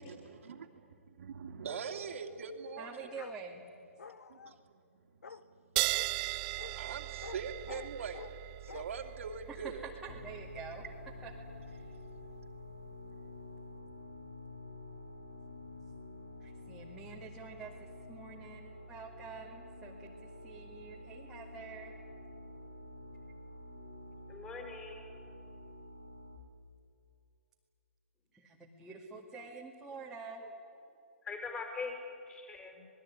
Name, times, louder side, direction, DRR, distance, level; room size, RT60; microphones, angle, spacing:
voice 1, 0.0-3.1 4.3-4.6 5.3-5.4 6.7-9.9, right 5 dB, 65° right, 3 dB, 2.7 m, -43 dB
voice 2, 2.8-3.6 9.5-9.7 10.0-10.8 11.2-11.3 11.7-11.9 16.4-20.1 20.4-21.9 28.3-30.4, right 5 dB, 5° right, -4 dB, 2.2 m, -47 dB
Bark, 3.1-3.4 4.0-4.5 5.2-5.4 5.9-6.1 6.6-6.8 7.2-7.4 7.7-8.3 8.7-8.8, left 6 dB, 85° left, 1.3 m, -47 dB
sound 1, 5.8-12.7, right 20 dB, 30° right, 0.6 m, -39 dB
sound 2, 10.1-26.4, left 2 dB, 50° left, 4.0 m, -49 dB
voice 3, 24.3-25.1 31.2-31.9 32.3-32.8, left 4 dB, 15° left, 3 dB, 5.5 m, -42 dB
26.5 x 20.5 x 9.8 m, 2.5 s
hypercardioid pair, 150°, 8 cm